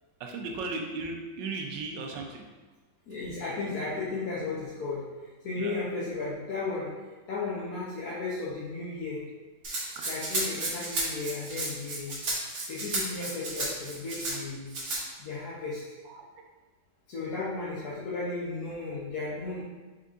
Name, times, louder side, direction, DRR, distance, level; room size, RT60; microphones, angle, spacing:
voice 1, 0.2-2.5 5.6-5.8 10.0-10.1 12.3-12.4 16.0-16.3, right 3 dB, 75° right, 2 dB, 1.2 m, -36 dB
voice 2, 3.1-5.0 5.4-6.9 7.3-9.2 10.1-12.2 12.7-14.7 15.2-15.8 17.1-19.6, left 3 dB, 60° left, -9 dB, 1.1 m, -34 dB
Rattle (instrument), 9.6-14.4 14.7-15.0, right 2 dB, 50° right, 1.0 m, -33 dB
4.4 x 3.8 x 2.4 m, 1.3 s
omnidirectional pair, 2.1 m